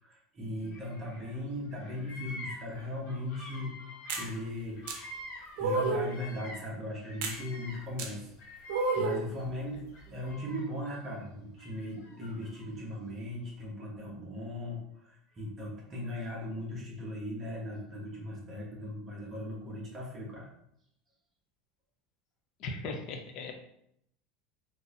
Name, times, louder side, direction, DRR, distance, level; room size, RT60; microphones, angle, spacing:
voice 1, 0.0-3.7 4.1-4.8 5.6-8.3 8.9-20.5, left 1 dB, 25° right, -3 dB, 1.1 m, -38 dB
Bird vocalization bird call bird song, 0.6-1.4 1.6-6.7 7.0-9.4 9.9-10.9 11.6-12.7, left 1 dB, 80° left, 1.1 m, -47 dB
sound 1, 4.1-4.3 4.9-5.0 5.6-6.1 7.2-7.4 8.0-8.1 8.7-9.3, right 3 dB, 70° right, 0.6 m, -30 dB
voice 2, 22.6-23.5, left 3 dB, 50° left, 4 dB, 0.6 m, -38 dB
4.0 x 2.7 x 2.5 m, 0.73 s
supercardioid pair, 145°, 0 cm